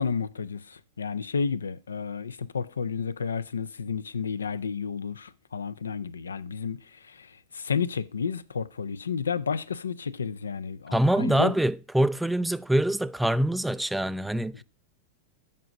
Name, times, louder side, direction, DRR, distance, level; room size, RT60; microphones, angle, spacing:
voice 1, 0.0-6.8 7.1-11.5, left 6 dB, 85° left, 0.5 m, -31 dB
voice 2, 10.9-14.6, right 1 dB, 5° right, 0.3 m, -24 dB
7.6 x 4.8 x 5.1 m
hypercardioid pair, 100°, 0 cm